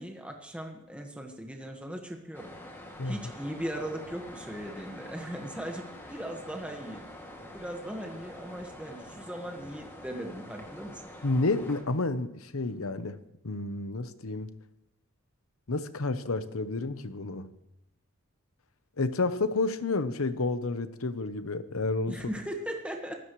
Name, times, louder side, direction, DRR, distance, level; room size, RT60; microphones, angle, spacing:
voice 1, 0.0-2.5 3.0-7.0 7.5-11.0 22.1-23.2, equal, 5° right, 2 dB, 1.5 m, -38 dB
sound 1, 2.3-11.8, left 1 dB, 10° left, 2.3 m, -46 dB
voice 2, 11.2-13.2 13.4-14.5 15.7-17.5 19.0-22.2, left 3 dB, 75° left, 12 dB, 1.0 m, -30 dB
24.0 x 13.0 x 3.2 m, 0.86 s
head